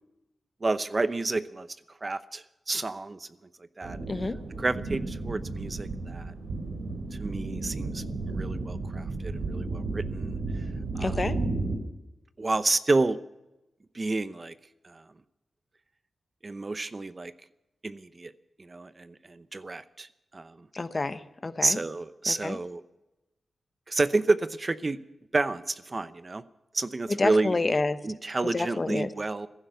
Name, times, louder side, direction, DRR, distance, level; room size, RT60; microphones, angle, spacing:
voice 1, 0.6-1.7 2.0-3.3 3.8-4.0 4.6-6.3 7.2-10.4 10.9-11.2 12.4-13.2 13.9-14.5 14.8-15.0 16.4-17.3 17.8-18.3 18.6-20.1 20.3-20.6 21.6-22.8 23.9-25.0 25.3-26.4 26.7-27.5 28.0-29.5, right 3 dB, 35° right, 13 dB, 0.8 m, -29 dB
sound 1, 3.8-11.8, right 3 dB, 90° right, 3.4 m, -33 dB
voice 2, 11.0-11.3 20.7-21.8 22.3-22.6 27.1-28.0 28.5-29.1, left 3 dB, 40° left, 12 dB, 1.0 m, -28 dB
15.0 x 11.5 x 8.0 m, 0.96 s
cardioid pair, 65°, 0 cm